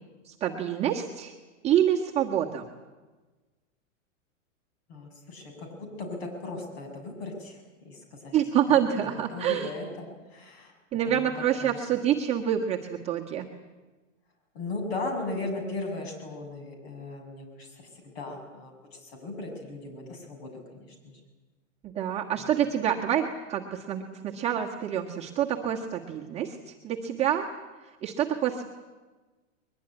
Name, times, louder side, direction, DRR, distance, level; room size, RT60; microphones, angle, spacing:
voice 1, 0.2-1.3 1.6-2.6 8.3-9.7 10.9-13.5 21.8-27.5 28.0-28.7, right 10 dB, 15° right, -2 dB, 1.5 m, -27 dB
voice 2, 4.9-8.3 8.7-8.8 9.3-10.7 11.0-11.3 11.6-11.8 14.5-20.5 21.0-21.2 22.4-22.5, left 2 dB, 50° left, 4 dB, 7.2 m, -37 dB
22.0 x 21.5 x 10.0 m, 1.3 s
supercardioid pair, 160°, 39 cm